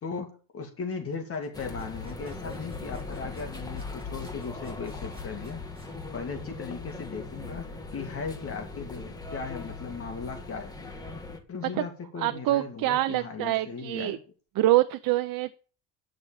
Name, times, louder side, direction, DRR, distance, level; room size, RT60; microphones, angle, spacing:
voice 1, 0.0-5.6 6.1-10.7 11.5-14.2, left 5 dB, 40° left, 5 dB, 2.4 m, -37 dB
sound 1, 1.1-6.0, right 2 dB, 15° right, 5.9 m, -56 dB
sound 2, 1.5-11.4, left 3 dB, 10° left, 1.8 m, -39 dB
voice 2, 12.2-14.2 14.6-15.6, right 16 dB, 65° right, 10 dB, 0.8 m, -25 dB
9.8 x 6.4 x 8.9 m, 0.39 s
cardioid pair, 135°, 37 cm